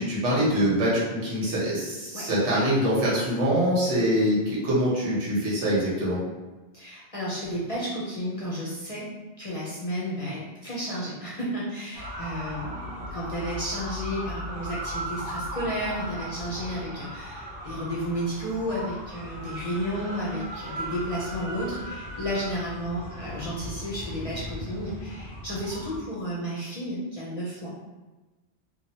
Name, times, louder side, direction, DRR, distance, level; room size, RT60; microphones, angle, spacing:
voice 1, 0.0-6.2, equal, 80° right, -6 dB, 1.3 m, -24 dB
voice 2, 6.7-9.1 9.4-27.7, equal, 40° left, -7 dB, 0.6 m, -32 dB
sound 1, 11.9-26.0, equal, 50° right, 1.2 m, -37 dB
3.2 x 2.2 x 2.8 m, 1.2 s
omnidirectional pair, 1.2 m